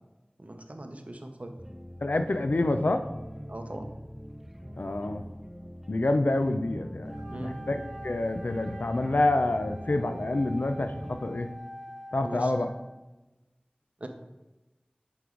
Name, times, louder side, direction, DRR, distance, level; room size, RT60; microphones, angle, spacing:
voice 1, 0.4-1.5 3.5-3.9 7.3-7.6 12.2-12.5 14.0-14.1, right 1 dB, 50° right, 5 dB, 0.7 m, -39 dB
sound 1, 1.6-11.3, equal, 5° right, 0.4 m, -43 dB
voice 2, 2.0-3.1 4.8-5.2 5.9-7.8 8.0-11.5 12.1-12.7, left 2 dB, 75° left, 7 dB, 0.4 m, -27 dB
Wind instrument woodwind instrument, 7.1-13.0, right 1 dB, 15° left, 0.9 m, -45 dB
8.1 x 3.1 x 3.8 m, 1.1 s
wide cardioid pair, 45°, 3 cm